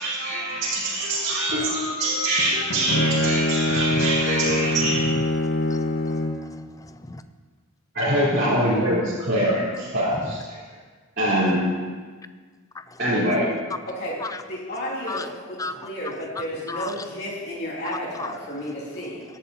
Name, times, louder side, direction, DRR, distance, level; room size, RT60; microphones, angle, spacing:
voice 1, 0.0-5.1 7.9-10.6 11.2-11.6 13.0-13.5, right 1 dB, 50° right, -13 dB, 3.8 m, -24 dB
Bowed string instrument, 2.4-6.5, left 1 dB, 70° left, 1.4 m, -24 dB
voice 2, 3.7-4.1 4.8-5.2 5.7-7.2 10.2-10.3 14.2-14.4 15.1-15.3 15.6-15.9 16.4-16.9 17.8-18.3, left 3 dB, 15° left, 10 dB, 0.4 m, -35 dB
voice 3, 13.9-14.2 14.5-19.2, equal, 50° left, -6 dB, 3.0 m, -32 dB
18.0 x 11.0 x 2.9 m, 1.5 s
head